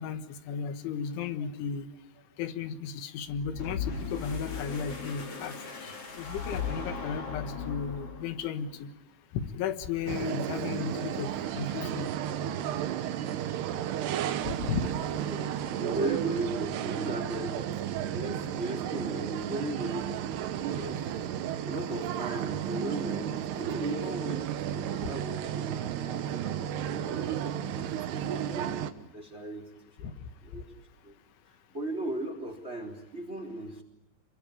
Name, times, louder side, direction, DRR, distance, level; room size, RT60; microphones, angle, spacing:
voice 1, 0.0-1.9 2.4-5.5 5.8-8.9 9.3-12.1 14.5-14.9, left 7 dB, 85° left, 9 dB, 3.9 m, -35 dB
sound 1, 3.4-8.5, left 5 dB, 35° left, 3.7 m, -37 dB
sound 2, 10.1-28.9, right 10 dB, 70° right, 3.1 m, -33 dB
voice 2, 13.2-13.6 14.8-14.9 15.3-17.7 18.1-21.1 21.6-29.7 30.0-30.1 30.4-30.7 31.0-31.1 31.7-33.8, right 1 dB, 15° right, 5 dB, 3.3 m, -37 dB
27.5 x 23.5 x 8.5 m, 0.92 s
omnidirectional pair, 5.4 m